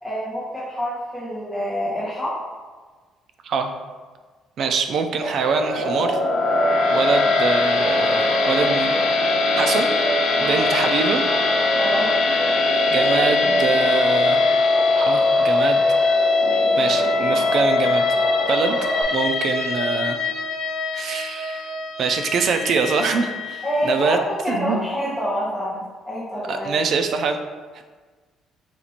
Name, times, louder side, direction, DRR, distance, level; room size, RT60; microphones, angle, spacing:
voice 1, 0.0-2.3 7.1-7.2 10.4-10.6 11.8-12.1 23.6-24.2 24.4-26.7, equal, 5° left, -10 dB, 0.9 m, -27 dB
voice 2, 4.6-6.2 6.9-8.9 9.6-9.9 10.4-11.2 12.9-14.4 14.9-15.8 16.8-18.1 18.5-18.8 19.1-20.2 20.9-21.7 22.0-24.2 24.5-24.9 26.5-27.4, right 5 dB, 50° right, 6 dB, 0.4 m, -24 dB
sound 1, 5.2-19.0, equal, 85° right, 0.7 m, -27 dB
sound 2, 5.7-24.0, left 3 dB, 65° left, 0.7 m, -21 dB
4.3 x 2.5 x 4.2 m, 1.4 s
cardioid pair, 140°, 0 cm